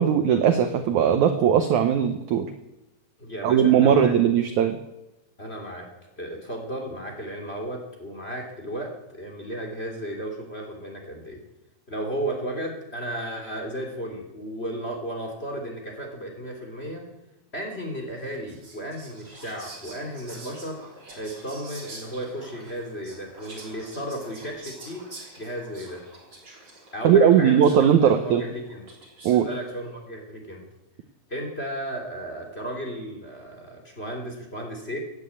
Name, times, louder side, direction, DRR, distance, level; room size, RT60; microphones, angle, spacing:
voice 1, 0.0-2.5 3.4-4.8 27.0-28.4 29.2-29.5, right 8 dB, 75° right, 8 dB, 1.8 m, -19 dB
voice 2, 3.2-4.1 5.4-5.9 6.2-11.4 11.9-17.0 17.5-20.8 21.1-25.1 25.4-26.0 26.9-28.8 29.4-30.6 31.3-35.0, right 1 dB, 20° left, 2 dB, 2.7 m, -34 dB
Whispering, 18.2-29.6, right 2 dB, 25° right, 3.9 m, -46 dB
15.5 x 9.8 x 8.6 m, 0.95 s
omnidirectional pair, 4.4 m